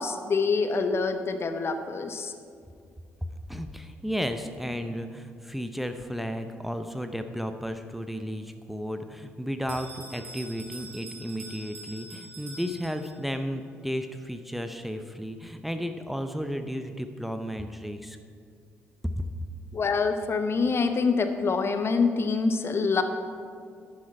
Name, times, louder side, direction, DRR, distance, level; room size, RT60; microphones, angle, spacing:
voice 1, 0.0-2.3 19.7-23.0, left 4 dB, 40° left, 8 dB, 0.9 m, -26 dB
voice 2, 3.5-18.2 19.2-19.3, equal, ahead, 7 dB, 0.7 m, -33 dB
Bell, 9.7-13.4, right 2 dB, 85° right, 1.4 m, -44 dB
11.0 x 9.7 x 4.5 m, 2.3 s
figure-of-eight pair, 40°, 7 cm